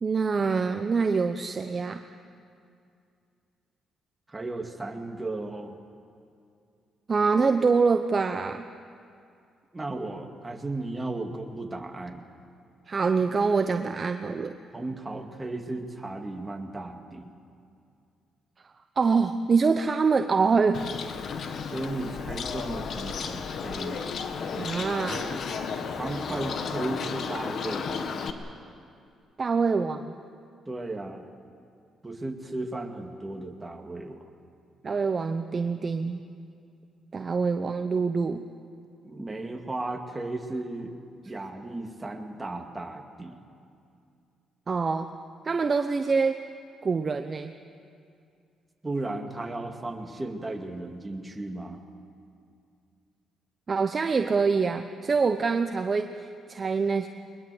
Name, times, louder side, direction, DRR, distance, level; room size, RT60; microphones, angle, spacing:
voice 1, 0.0-2.0 7.1-8.6 12.9-14.6 19.0-20.8 24.5-25.4 29.4-30.1 34.8-36.3 37.1-38.4 44.7-45.1 45.4-46.4 46.8-47.5 53.7-56.2 56.5-57.1, right 4 dB, 35° right, 8 dB, 0.8 m, -25 dB
voice 2, 4.3-5.8 9.7-12.2 14.7-17.3 21.7-24.1 26.0-28.1 30.7-31.3 32.0-34.2 39.0-40.9 41.3-43.4 48.8-51.8, right 2 dB, 20° right, 3 dB, 2.2 m, -35 dB
Bird, 20.7-28.3, left 6 dB, 60° left, 1.5 m, -33 dB
22.0 x 21.0 x 7.9 m, 2.4 s
cardioid pair, 90°, 0 cm